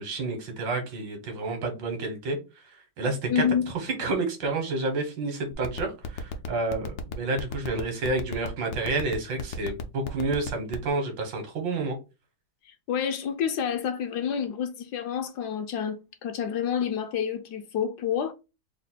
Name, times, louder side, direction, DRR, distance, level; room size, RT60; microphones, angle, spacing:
voice 1, 0.0-2.4 3.0-3.4 3.8-12.0, right 3 dB, 80° right, 1.8 m, -29 dB
voice 2, 3.3-3.6 12.7-18.3, left 8 dB, 70° left, 1.1 m, -28 dB
sound 1, 5.5-10.9, left 7 dB, 85° left, 1.3 m, -33 dB
4.0 x 2.2 x 4.2 m
omnidirectional pair, 2.0 m